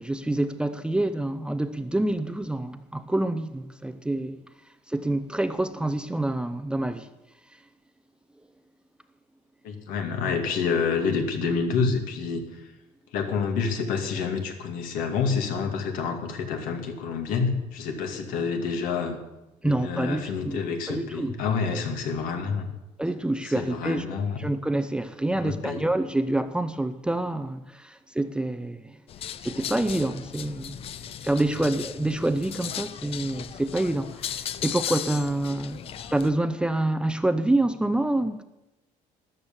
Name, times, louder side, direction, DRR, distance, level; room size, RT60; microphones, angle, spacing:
voice 1, 0.0-4.4 4.9-7.1 19.6-20.6 20.9-21.4 23.0-24.1 24.4-29.0 29.4-30.8 31.2-35.8 36.1-38.4, right 1 dB, 5° right, 0.6 m, -27 dB
voice 2, 9.6-12.7 13.1-19.2 19.6-22.7 23.4-24.4 25.4-25.8, left 5 dB, 80° left, 2.5 m, -28 dB
sound 1, 29.1-36.3, left 9 dB, 45° left, 0.6 m, -36 dB
13.5 x 11.5 x 7.3 m
cardioid pair, 145°, 14 cm